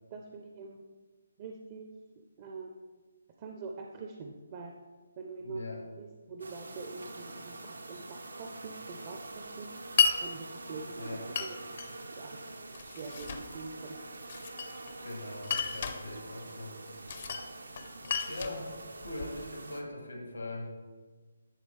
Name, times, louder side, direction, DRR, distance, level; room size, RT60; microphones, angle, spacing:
voice 1, 0.1-0.8 1.4-1.9 2.4-2.9 3.4-4.8 5.2-9.7 10.2-11.8 12.1-12.4 12.8-14.0, right 4 dB, 30° right, 2 dB, 0.5 m, -44 dB
voice 2, 5.4-5.8 11.0-11.2 15.0-16.8 18.3-18.7 19.0-20.7, left 1 dB, 85° left, 1 dB, 1.6 m, -41 dB
sound 1, 6.4-19.8, right 2 dB, 85° right, 0.6 m, -45 dB
Glass, 10.0-10.2 11.4-11.9 12.7-13.5 14.3-15.0 15.4-16.0 17.1-17.5 17.8-19.4, left 6 dB, 50° left, 0.6 m, -31 dB
9.9 x 3.8 x 3.2 m, 1.4 s
figure-of-eight pair, 155°, 0 cm